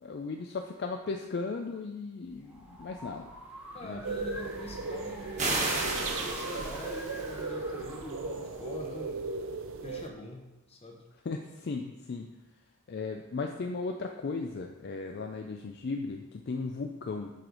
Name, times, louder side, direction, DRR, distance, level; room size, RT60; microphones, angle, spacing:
voice 1, 0.0-3.3 3.8-4.0 11.2-12.3 12.9-17.3, left 4 dB, 50° left, 3 dB, 0.4 m, -36 dB
sound 1, 2.3-9.4, equal, 5° right, 0.8 m, -47 dB
voice 2, 3.7-9.2 9.8-11.0, left 1 dB, 25° left, 1 dB, 0.9 m, -44 dB
sound 2, 4.0-10.1, right 3 dB, 60° right, 0.5 m, -37 dB
sound 3, 5.4-7.4, right 2 dB, 30° right, 1.2 m, -32 dB
7.6 x 4.9 x 3.9 m, 1.0 s
head